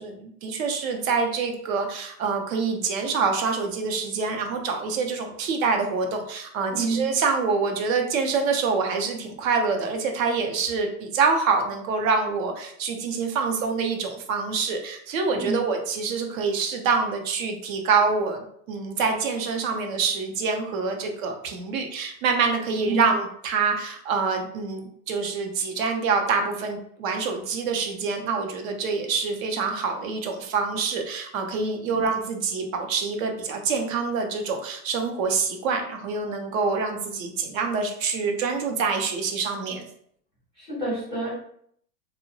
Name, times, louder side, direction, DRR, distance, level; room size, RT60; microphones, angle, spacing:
voice 1, 0.0-39.9, right 5 dB, 55° right, 4 dB, 0.6 m, -26 dB
voice 2, 6.7-7.1 15.3-15.6 22.8-23.1 32.0-32.1 40.6-41.3, right 2 dB, ahead, -19 dB, 0.3 m, -28 dB
2.8 x 2.1 x 2.6 m, 0.66 s
supercardioid pair, 150°, 50 cm